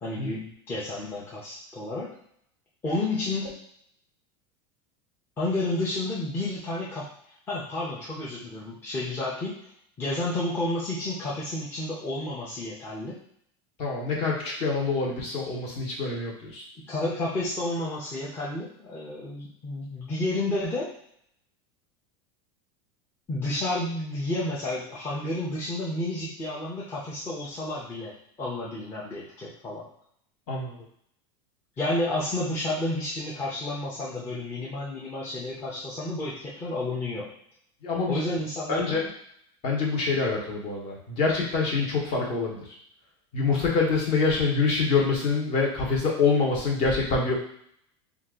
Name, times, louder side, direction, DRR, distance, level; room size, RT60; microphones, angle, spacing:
voice 1, 0.0-2.1 2.8-3.5 5.4-7.1 7.5-9.5 10.0-13.2 16.8-20.9 23.3-28.1 28.4-29.8 31.8-37.3 38.1-39.0, left 2 dB, 15° left, -7 dB, 0.6 m, -31 dB
voice 2, 13.8-16.6 30.5-30.8 37.8-38.2 38.7-39.1 39.6-42.7 43.3-47.3, left 4 dB, 40° left, -2 dB, 1.0 m, -26 dB
2.8 x 2.4 x 3.6 m, 0.68 s
supercardioid pair, 160°, 14 cm